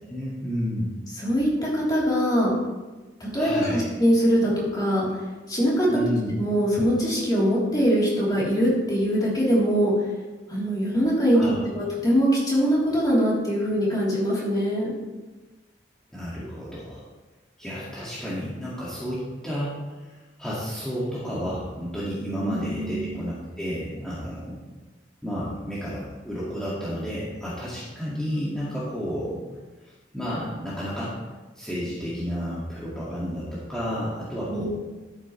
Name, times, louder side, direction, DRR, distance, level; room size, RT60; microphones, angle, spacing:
voice 1, 0.0-0.9 3.3-3.8 5.9-6.3 11.3-11.7 16.1-17.1 17.6-19.7 20.0-24.6 25.2-29.4 29.8-31.1 31.6-34.6, equal, 5° left, -9 dB, 2.1 m, -31 dB
voice 2, 1.2-2.6 3.2-5.1 5.5-5.9 6.4-9.9 10.5-14.9 22.4-23.1 34.5-34.6, equal, 20° left, -6 dB, 3.4 m, -22 dB
12.5 x 9.1 x 3.2 m, 1.2 s
head